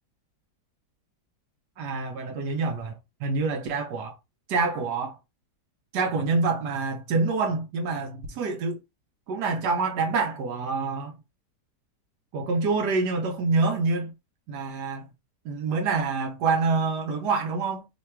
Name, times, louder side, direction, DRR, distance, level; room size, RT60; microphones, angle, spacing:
voice 1, 1.8-4.2 4.5-5.2 5.9-8.8 9.3-11.1 12.3-14.1 14.5-15.1 15.4-17.9, right 4 dB, 80° right, 1.2 m, -26 dB
3.3 x 2.3 x 4.3 m
omnidirectional pair, 1.8 m